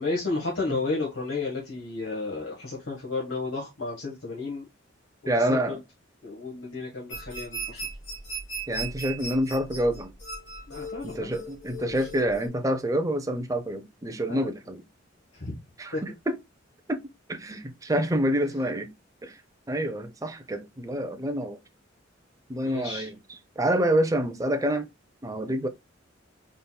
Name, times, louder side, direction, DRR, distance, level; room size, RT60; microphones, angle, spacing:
voice 1, 0.0-4.6 5.3-5.8 6.2-7.9 10.7-11.3 12.0-12.1 14.2-14.5 15.3-15.6 15.9-16.0 22.6-23.1, left 3 dB, 90° left, 1.4 m, -32 dB
voice 2, 5.3-5.8 8.7-10.1 11.0-14.8 15.8-16.1 16.9-17.0 17.3-18.9 19.2-19.3 19.7-21.6 22.5-23.1 23.6-24.9 25.2-25.7, right 1 dB, 15° right, 0.5 m, -27 dB
sound 1, 7.1-12.5, right 2 dB, 70° left, 2.1 m, -37 dB
4.2 x 3.9 x 2.2 m
head